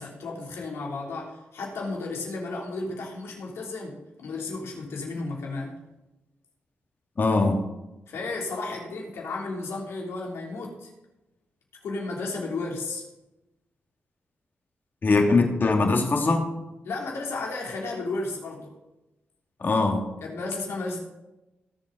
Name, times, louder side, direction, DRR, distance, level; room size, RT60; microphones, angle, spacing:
voice 1, 0.0-5.8 8.1-10.9 11.8-13.1 16.8-18.7 20.2-21.0, left 3 dB, 85° left, -1 dB, 3.5 m, -33 dB
voice 2, 7.2-7.6 15.0-16.4 19.6-20.1, left 3 dB, 50° left, 2 dB, 2.5 m, -21 dB
18.5 x 7.5 x 4.1 m, 0.97 s
cardioid pair, 75°, 4 cm